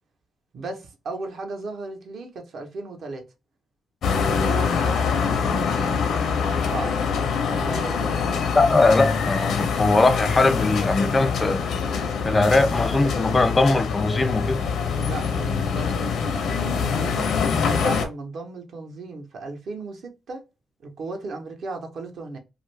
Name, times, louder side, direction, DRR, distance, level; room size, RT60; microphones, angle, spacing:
voice 1, 0.5-3.2 4.2-5.9 6.5-7.0 7.6-8.0 14.9-17.4 17.7-20.4 20.8-22.4, right 3 dB, 60° right, 0.8 m, -35 dB
sound 1, 4.0-18.1, left 6 dB, 75° left, 0.6 m, -24 dB
voice 2, 8.5-11.6 12.2-14.6, left 3 dB, 20° left, 0.3 m, -20 dB
2.6 x 2.5 x 3.1 m
cardioid pair, 135°, 0 cm